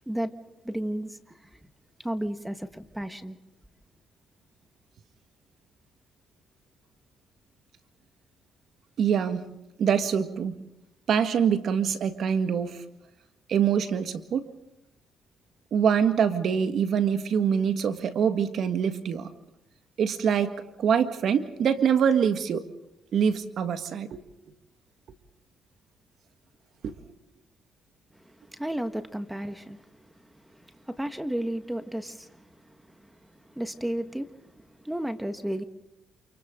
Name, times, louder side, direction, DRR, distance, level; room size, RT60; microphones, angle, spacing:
voice 1, 0.6-1.4 2.0-3.4 28.2-30.0 30.5-32.8 33.0-33.1 33.5-35.6, right 1 dB, 5° right, 1.7 m, -33 dB
voice 2, 9.0-9.5 9.8-10.6 11.1-12.8 13.5-14.5 15.7-19.3 20.0-20.5 20.8-22.6 23.1-24.2 26.8-26.9, right 7 dB, 65° right, 1.8 m, -24 dB
29.0 x 28.5 x 3.9 m
cardioid pair, 85°, 0 cm